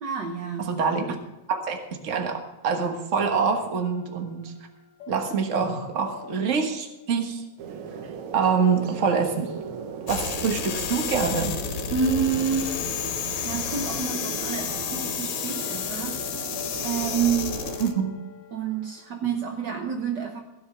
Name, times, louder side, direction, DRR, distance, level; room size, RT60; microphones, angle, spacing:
voice 1, 0.0-0.7 11.9-12.8 13.4-16.2 16.8-17.6 18.5-20.4, right 7 dB, 80° right, 3 dB, 0.9 m, -28 dB
voice 2, 0.6-1.2 1.5-4.5 5.1-7.4 8.3-9.5 10.1-11.5 17.8-18.1, right 5 dB, 45° right, 4 dB, 0.9 m, -25 dB
sound 1, 3.8-7.3 9.1-10.6 10.9-14.2 15.4-19.3, left 8 dB, 55° left, 2.1 m, -44 dB
sound 2, 7.6-17.8, right 6 dB, 65° right, 1.4 m, -37 dB
sound 3, 10.1-17.9, left 9 dB, 85° left, 2.4 m, -31 dB
16.0 x 7.1 x 6.2 m, 0.98 s
omnidirectional pair, 3.3 m